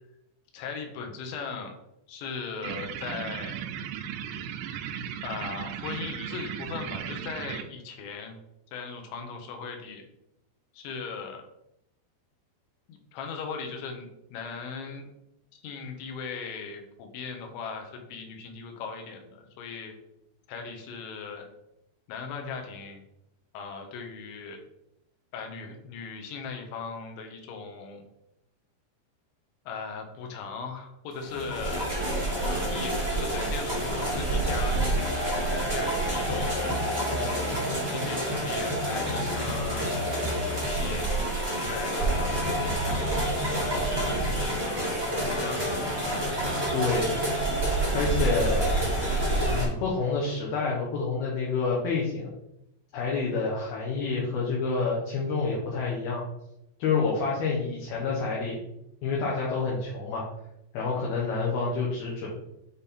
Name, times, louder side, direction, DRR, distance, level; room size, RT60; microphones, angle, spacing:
voice 1, 0.5-1.7 2.1-3.6 5.2-8.4 8.7-10.0 10.7-11.4 12.9-15.1 15.5-20.0 20.5-21.5 22.1-23.0 23.5-24.6 25.3-28.1 29.7-31.9 32.4-34.8 35.5-36.8 37.2-37.6 37.9-40.0 40.6-41.2 41.7-42.6 43.6-45.8, left 5 dB, 90° left, 3 dB, 3.4 m, -38 dB
sound 1, 2.6-7.6, right 9 dB, 90° right, 2.9 m, -36 dB
sound 2, 31.2-49.6, right 1 dB, 10° right, 1.3 m, -28 dB
voice 2, 46.7-47.1 47.9-48.7 49.5-52.3 52.9-56.2 56.8-58.6 59.0-60.3 60.7-62.3, left 4 dB, 70° left, -4 dB, 2.8 m, -28 dB
8.0 x 3.6 x 4.2 m, 0.83 s
omnidirectional pair, 5.1 m